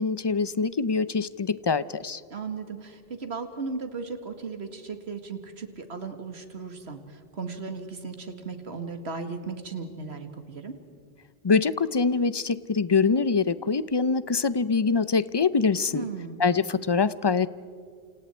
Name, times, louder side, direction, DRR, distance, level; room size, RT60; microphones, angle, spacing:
voice 1, 0.0-2.2 11.4-16.0 16.4-17.5, left 4 dB, 35° left, 16 dB, 0.5 m, -24 dB
voice 2, 2.3-10.7 15.9-16.4, right 4 dB, 85° right, 7 dB, 2.1 m, -36 dB
28.5 x 28.0 x 4.4 m, 2.3 s
omnidirectional pair, 1.1 m